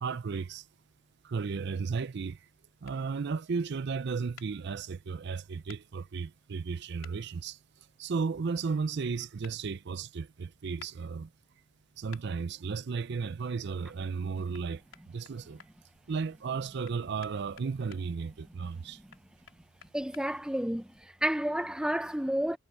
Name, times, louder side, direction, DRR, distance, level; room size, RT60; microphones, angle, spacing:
voice 1, 0.0-0.7 1.2-2.5 2.8-7.6 8.0-11.3 12.0-15.6 16.1-19.0, right 5 dB, 55° right, 0.5 m, -34 dB
sound 1, 2.8-3.0 4.4-4.5 5.7-5.8 7.0-7.2 9.4-9.6 10.8-10.9 12.1-12.3 14.5-14.6 14.9-15.7 16.8-18.0 19.1-20.2, left 7 dB, 80° left, 3.8 m, -51 dB
voice 2, 19.9-20.9 21.2-22.6, equal, 5° right, 0.6 m, -30 dB
head